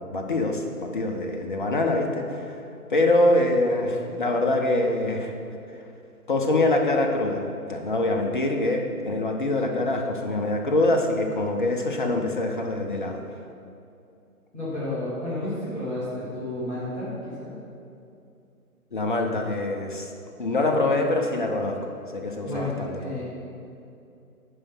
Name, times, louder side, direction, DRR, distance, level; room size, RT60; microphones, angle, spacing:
voice 1, 0.0-2.5 2.9-5.3 6.3-7.4 7.7-13.2 18.9-20.1 20.4-23.2, left 2 dB, 35° left, 3 dB, 0.8 m, -24 dB
voice 2, 14.5-17.6 22.4-23.3, left 1 dB, 5° left, -13 dB, 1.0 m, -31 dB
9.8 x 5.0 x 5.6 m, 2.6 s
figure-of-eight pair, 140°, 45 cm